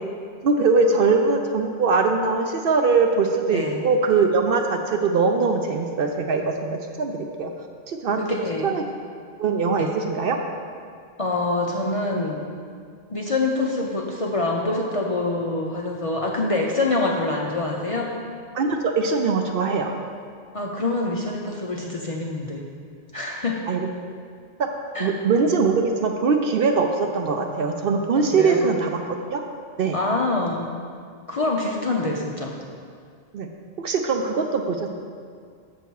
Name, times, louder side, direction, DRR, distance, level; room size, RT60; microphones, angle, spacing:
voice 1, 0.4-7.5 7.9-8.2 8.6-8.8 9.4-10.4 18.5-19.9 23.7-23.9 24.6-24.7 25.0-29.4 29.8-30.0 33.3-33.5 33.8-34.9, right 4 dB, 60° right, 4 dB, 0.7 m, -22 dB
voice 2, 3.5-3.8 8.2-8.8 9.8-9.9 11.2-12.4 13.1-18.1 20.5-22.6 23.1-23.6 24.9-25.1 28.2-28.7 29.9-30.7 31.3-32.5, left 2 dB, 40° left, -2 dB, 0.5 m, -25 dB
6.9 x 6.4 x 4.6 m, 2.1 s
omnidirectional pair, 1.2 m